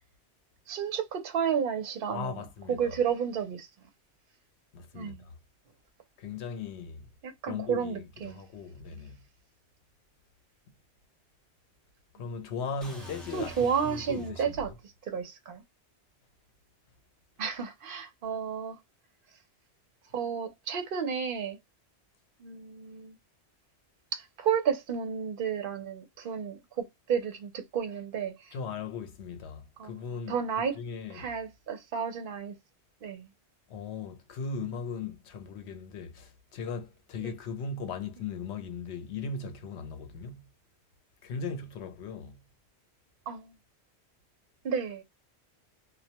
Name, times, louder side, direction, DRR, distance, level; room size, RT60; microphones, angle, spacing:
voice 1, 0.7-2.4 2.7-3.7 4.9-5.2 7.4-8.4 13.3-14.7 15.1-15.6 17.4-18.8 20.1-21.6 22.4-23.2 24.1-28.5 29.8-30.0 30.3-30.8 31.1-32.6 33.0-33.3 37.2-37.3 43.3-43.5 44.6-45.0, right 7 dB, 60° right, 0.8 m, -32 dB
voice 2, 2.1-3.0 4.7-5.3 6.2-7.1 7.5-9.2 12.1-14.8 28.5-31.3 33.7-40.4 41.2-42.4, left 5 dB, 85° left, 0.9 m, -38 dB
sound 1, 12.8-14.7, left 1 dB, ahead, 0.6 m, -46 dB
2.3 x 2.1 x 2.8 m
omnidirectional pair, 1.1 m